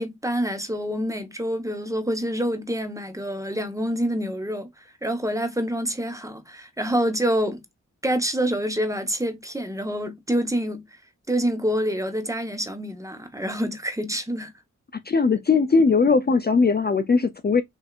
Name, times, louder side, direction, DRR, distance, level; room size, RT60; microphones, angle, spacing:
voice 1, 0.0-7.6 8.0-11.0 11.3-14.5, equal, 10° right, 1.1 m, -27 dB
voice 2, 15.0-17.6, left 4 dB, 35° left, 0.5 m, -19 dB
5.6 x 2.7 x 2.4 m
cardioid pair, 70°, 29 cm